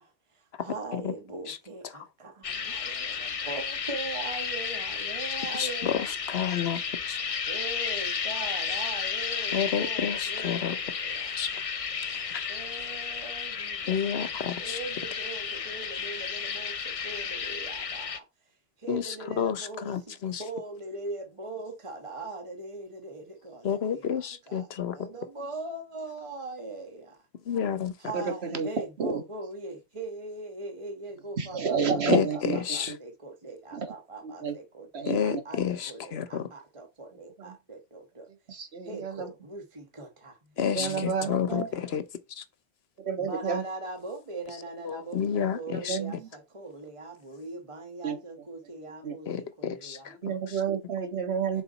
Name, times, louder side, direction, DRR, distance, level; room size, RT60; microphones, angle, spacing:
voice 1, 0.0-6.1 7.5-11.3 12.5-18.2 18.8-27.2 28.0-38.3 38.8-41.8 43.2-50.4 51.5-51.6, right 2 dB, 25° right, 1.4 m, -41 dB
sound 1, 2.4-18.2, left 6 dB, 40° left, 0.5 m, -33 dB
voice 2, 5.5-7.2 9.5-10.8 11.4-11.5 12.1-12.4 13.9-14.8 18.9-20.4 23.6-25.1 27.5-27.9 32.1-32.9 35.1-36.5 40.6-42.0 42.3-42.4 44.8-46.0 49.3-50.1 50.5-50.6, left 8 dB, 60° left, 1.1 m, -30 dB
voice 3, 28.1-28.7 29.0-29.2 31.4-32.6 32.9-33.0 33.7-33.9 34.2-34.5 34.9-35.4 37.4-37.5 38.5-39.3 40.8-41.7 43.0-43.6 45.7-46.3 48.0-48.2 49.0-49.2 50.2-51.6, right 5 dB, 60° right, 1.6 m, -30 dB
6.9 x 5.1 x 4.1 m
omnidirectional pair, 1.2 m